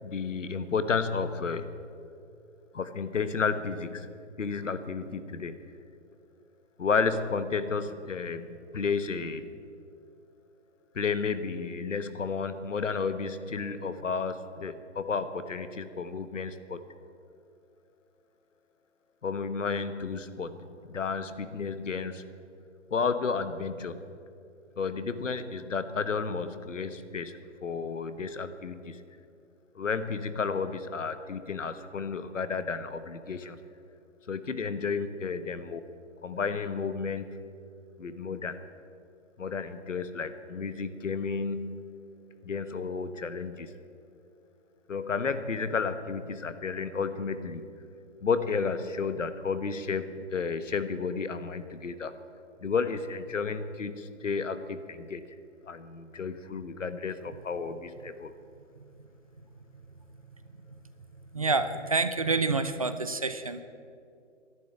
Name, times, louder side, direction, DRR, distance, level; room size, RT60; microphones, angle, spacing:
voice 1, 0.0-1.8 2.7-4.1 4.4-5.6 6.8-9.5 10.9-16.8 19.2-22.3 22.9-24.0 24.8-29.0 29.7-33.6 34.3-35.9 36.2-37.4 38.0-38.6 39.4-42.0 42.4-43.8 44.9-47.6 48.2-52.1 52.6-55.2 55.7-58.3, left 5 dB, 80° left, 11 dB, 1.3 m, -32 dB
voice 2, 61.3-63.6, right 3 dB, 30° right, 11 dB, 0.4 m, -28 dB
11.5 x 10.5 x 9.4 m, 2.4 s
hypercardioid pair, 155°, 37 cm